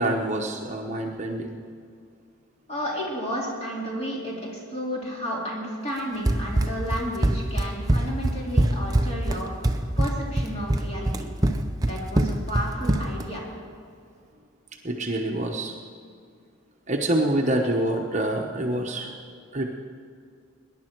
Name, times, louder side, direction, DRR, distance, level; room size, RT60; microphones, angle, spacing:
voice 1, 0.0-1.5 14.8-15.8 16.9-19.1 19.5-19.7, right 1 dB, 35° right, 1 dB, 1.0 m, -26 dB
voice 2, 2.7-11.3 11.8-13.4, equal, 30° left, -4 dB, 3.4 m, -32 dB
Run, 6.3-13.3, right 1 dB, 15° right, 0.6 m, -23 dB
21.0 x 10.5 x 4.6 m, 2.2 s
head